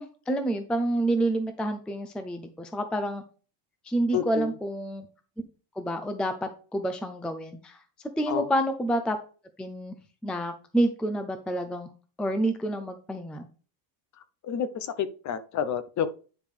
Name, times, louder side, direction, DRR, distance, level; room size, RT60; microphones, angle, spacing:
voice 1, 0.0-3.2 3.8-5.1 5.8-7.8 8.2-9.2 9.6-10.0 10.2-11.9 12.2-13.5, right 1 dB, ahead, 8 dB, 0.4 m, -28 dB
voice 2, 4.1-4.5 8.3-8.5 14.4-16.1, left 8 dB, 35° left, 14 dB, 0.7 m, -29 dB
9.2 x 5.1 x 3.3 m, 0.37 s
cardioid pair, 145°, 49 cm